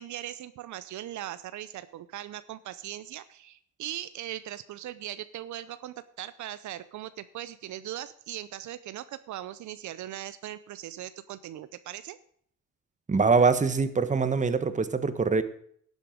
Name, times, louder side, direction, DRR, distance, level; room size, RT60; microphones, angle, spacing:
voice 1, 0.0-12.2, right 12 dB, 70° right, 14 dB, 0.6 m, -39 dB
voice 2, 13.1-15.4, right 4 dB, 25° right, 12 dB, 1.2 m, -23 dB
11.5 x 8.1 x 5.1 m, 0.62 s
cardioid pair, 90°, 30 cm